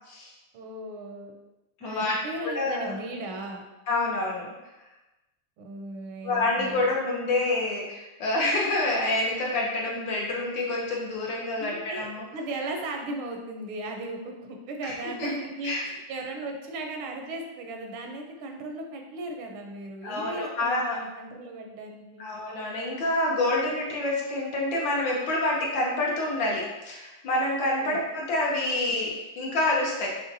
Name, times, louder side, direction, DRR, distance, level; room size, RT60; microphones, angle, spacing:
voice 1, 0.5-1.3 1.8-3.6 5.6-6.9 11.6-22.3 27.8-27.9, right 2 dB, 85° right, 2 dB, 1.6 m, -37 dB
voice 2, 1.8-2.1 2.5-3.0 3.9-4.5 6.2-12.2 14.8-15.3 15.6-15.9 20.0-21.0 22.2-30.1, left 2 dB, 70° left, -2 dB, 1.6 m, -27 dB
5.4 x 3.5 x 2.6 m, 1.0 s
omnidirectional pair, 2.2 m